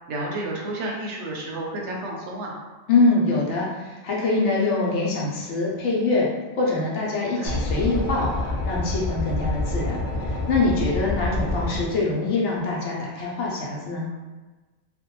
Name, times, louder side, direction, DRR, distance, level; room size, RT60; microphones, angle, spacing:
voice 1, 0.1-2.6 7.4-7.6 11.4-11.5, right 1 dB, 70° right, -2 dB, 0.9 m, -31 dB
voice 2, 2.9-6.3 6.5-10.0 10.2-14.1, left 3 dB, 70° left, -4 dB, 0.9 m, -24 dB
sound 1, 7.4-11.8, left 2 dB, 45° left, 0.7 m, -27 dB
2.5 x 2.2 x 2.9 m, 1.2 s
omnidirectional pair, 1.3 m